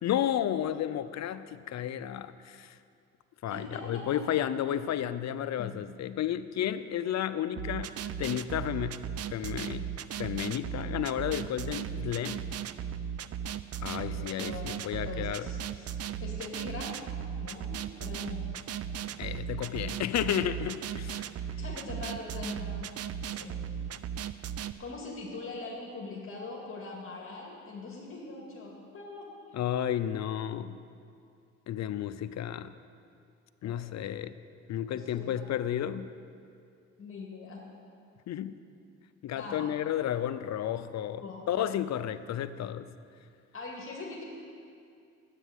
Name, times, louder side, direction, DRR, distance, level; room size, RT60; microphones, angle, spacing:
voice 1, 0.0-2.8 3.4-9.0 9.3-9.9 10.2-12.4 13.8-15.5 19.2-21.2 29.5-30.7 31.7-32.7 33.6-34.3 34.7-36.1 38.3-38.6 39.2-42.9, left 10 dB, 60° left, 13 dB, 0.6 m, -32 dB
voice 2, 3.5-4.0 5.6-5.7 14.1-14.8 15.1-17.1 17.4-18.5 19.7-20.1 21.6-22.9 23.2-23.5 24.8-29.6 33.6-33.9 34.9-35.5 37.0-37.6 39.3-39.7 41.2-41.4 43.5-44.2, left 3 dB, 45° left, -3 dB, 2.2 m, -42 dB
sound 1, 7.6-24.7, right 8 dB, 55° right, 0.6 m, -37 dB
10.0 x 8.3 x 9.4 m, 2.4 s
cardioid pair, 90°, 30 cm